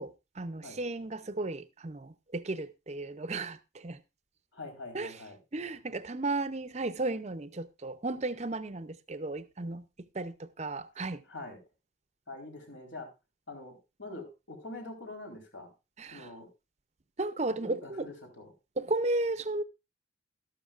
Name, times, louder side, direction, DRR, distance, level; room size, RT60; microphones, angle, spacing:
voice 1, 0.0-4.0 4.9-5.1 5.5-9.8 10.1-11.2 16.0-16.3 17.2-18.1 18.8-19.6, right 2 dB, 35° right, 0.6 m, -34 dB
voice 2, 4.5-5.4 11.3-11.6 12.3-13.1 13.5-15.7 16.1-16.5 17.6-18.5, left 2 dB, 75° left, 4.1 m, -44 dB
13.0 x 12.0 x 2.5 m
head